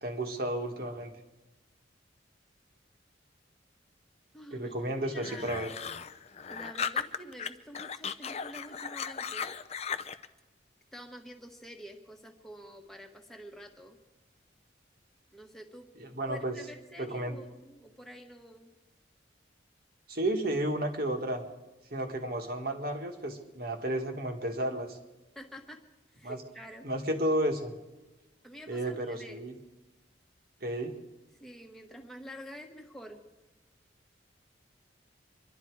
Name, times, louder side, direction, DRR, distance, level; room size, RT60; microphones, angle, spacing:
voice 1, 0.0-1.1 4.5-5.7 16.0-16.6 17.0-17.4 20.1-21.4 21.9-25.0 26.2-26.4 26.8-27.7 28.7-29.5 30.6-31.0, right 1 dB, 55° right, 4 dB, 1.7 m, -32 dB
voice 2, 4.3-5.7 6.5-9.5 10.9-14.0 15.3-15.9 16.3-18.7 25.3-25.8 26.1-26.9 28.4-29.5 31.4-33.2, equal, ahead, 2 dB, 1.4 m, -48 dB
sound 1, 5.2-7.5 7.7-10.3, left 6 dB, 35° left, 0.5 m, -36 dB
25.5 x 12.0 x 4.7 m, 1.1 s
head